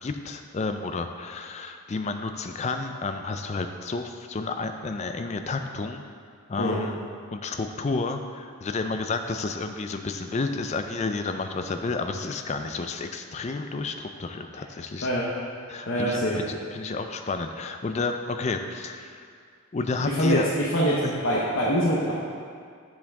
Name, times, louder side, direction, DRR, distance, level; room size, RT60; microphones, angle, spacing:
voice 1, 0.0-6.0 6.5-7.0 7.3-15.1 15.7-19.3 19.7-20.5 21.0-21.2, left 3 dB, 30° left, 7 dB, 0.3 m, -31 dB
voice 2, 15.9-16.4 20.0-22.1, equal, 60° left, -6 dB, 0.9 m, -24 dB
7.5 x 7.1 x 3.6 m, 2.2 s
head